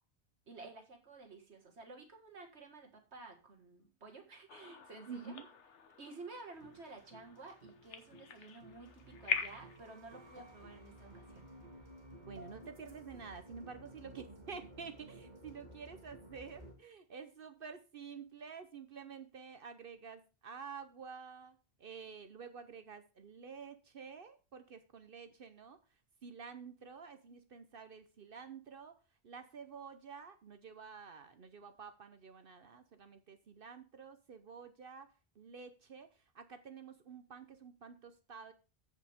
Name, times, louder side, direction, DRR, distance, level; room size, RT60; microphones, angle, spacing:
voice 1, 0.5-5.4 6.0-11.5, right 3 dB, 75° right, 3 dB, 2.1 m, -52 dB
sound 1, 4.5-9.8, left 6 dB, 85° left, 1.3 m, -43 dB
voice 2, 5.1-5.5 12.2-25.8 26.2-29.0 29.2-38.5, right 6 dB, 55° right, 10 dB, 0.9 m, -50 dB
sound 2, 6.5-16.7, right 1 dB, 40° right, 1.9 m, -55 dB
14.5 x 5.3 x 3.5 m, 0.32 s
omnidirectional pair, 1.2 m